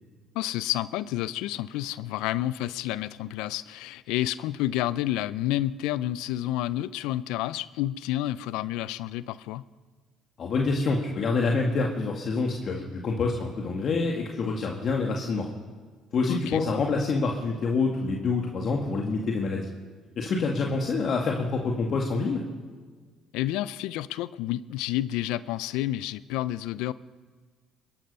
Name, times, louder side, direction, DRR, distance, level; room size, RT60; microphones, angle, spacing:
voice 1, 0.3-9.6 16.3-16.8 23.3-26.9, left 14 dB, 85° left, 17 dB, 0.4 m, -30 dB
voice 2, 10.4-15.5 16.1-19.7 20.2-22.4, left 4 dB, 55° left, 0 dB, 2.0 m, -27 dB
22.0 x 12.0 x 5.5 m, 1.5 s
supercardioid pair, 75°, 0 cm